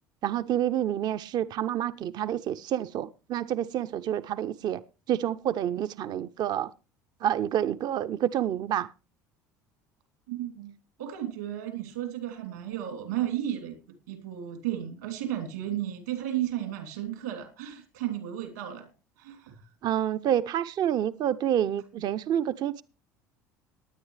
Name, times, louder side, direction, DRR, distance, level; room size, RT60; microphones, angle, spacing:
voice 1, 0.2-4.8 5.1-6.7 7.2-8.9 19.8-22.8, right 10 dB, 50° right, 0.6 m, -28 dB
voice 2, 10.3-10.7 11.0-13.8 14.1-18.9 19.2-19.6, right 12 dB, 85° right, 3.0 m, -33 dB
18.5 x 9.8 x 3.2 m
hypercardioid pair, 70°, 9 cm